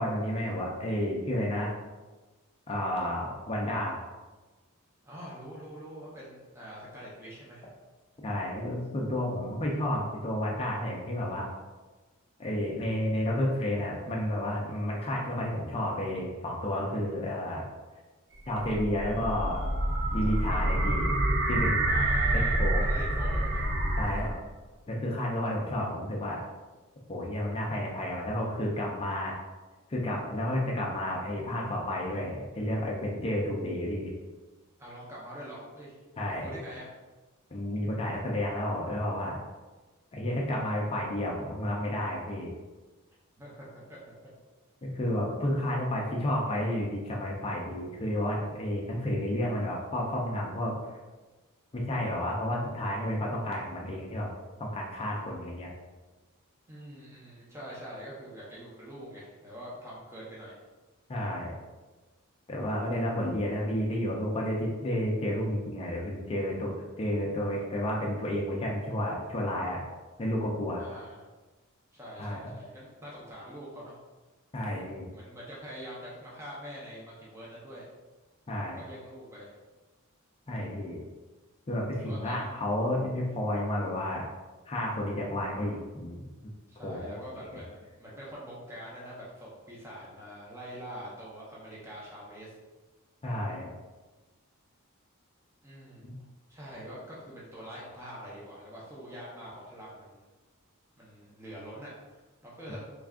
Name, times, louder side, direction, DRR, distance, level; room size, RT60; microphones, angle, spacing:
voice 1, 0.0-1.7 2.7-4.0 8.2-11.5 12.4-17.7 18.5-19.6 20.1-21.1 21.5-21.9 22.3-22.8 24.0-24.3 24.9-26.4 27.1-29.4 29.9-34.1 36.2-36.5 37.5-39.4 40.1-42.5 44.8-50.8 51.7-54.3 54.6-55.7 61.1-61.5 62.5-69.8 70.2-70.8 72.2-72.5 74.5-75.0 78.5-78.8 80.5-81.0 81.7-84.3 84.7-86.2 86.8-87.2 87.5-87.6 93.2-93.7 96.0-96.1, left 1 dB, 25° left, -3 dB, 0.5 m, -31 dB
voice 2, 5.0-7.7 21.9-23.7 34.8-36.0 36.4-36.9 43.4-44.0 56.7-60.6 70.8-71.2 71.9-74.0 75.1-77.8 78.8-79.5 82.0-82.5 86.7-92.5 95.6-96.1 96.5-100.2 101.0-102.9, equal, 10° right, -7 dB, 0.7 m, -44 dB
sound 1, 18.3-24.5, right 1 dB, 55° right, 0.5 m, -27 dB
3.2 x 2.4 x 3.6 m, 1.2 s
head